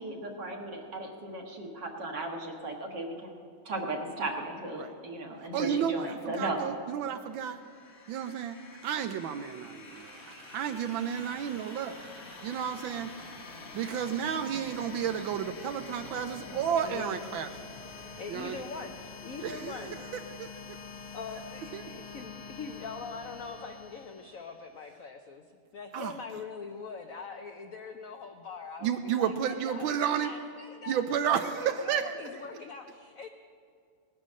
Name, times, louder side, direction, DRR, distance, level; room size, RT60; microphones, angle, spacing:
voice 1, 0.0-3.4 3.7-6.6, right 2 dB, 55° right, 1 dB, 2.2 m, -36 dB
voice 2, 5.5-7.6 8.1-17.5 18.3-18.6 19.4-20.8 21.7-21.8 25.9-26.2 28.8-30.3 30.9-32.2, right 8 dB, 75° right, 8 dB, 1.3 m, -32 dB
sound 1, 7.2-24.8, left 4 dB, 45° left, 1.0 m, -47 dB
voice 3, 14.4-15.3 16.5-17.6 18.2-20.0 21.1-31.0 31.3-33.3, left 5 dB, 75° left, 6 dB, 0.7 m, -43 dB
19.0 x 9.5 x 6.3 m, 2.3 s
omnidirectional pair, 2.3 m